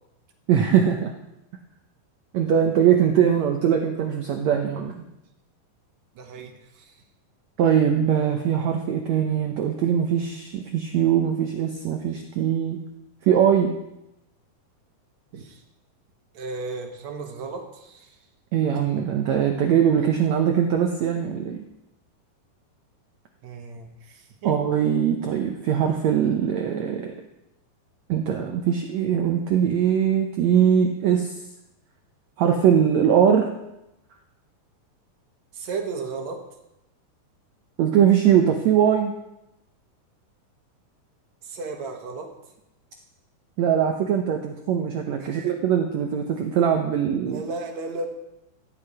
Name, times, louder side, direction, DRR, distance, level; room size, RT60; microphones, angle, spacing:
voice 1, 0.5-1.1 2.3-5.0 7.6-12.8 13.2-13.7 18.5-21.6 24.4-27.1 28.1-31.3 32.4-33.5 37.8-39.1 43.6-47.4, right 8 dB, 85° right, 3 dB, 1.5 m, -21 dB
voice 2, 6.2-6.9 15.3-15.6 16.3-18.2 23.4-24.6 35.5-36.4 41.4-42.3 45.2-45.6 47.2-48.1, right 3 dB, 60° right, 3 dB, 2.1 m, -34 dB
15.0 x 9.6 x 4.8 m, 0.89 s
omnidirectional pair, 4.4 m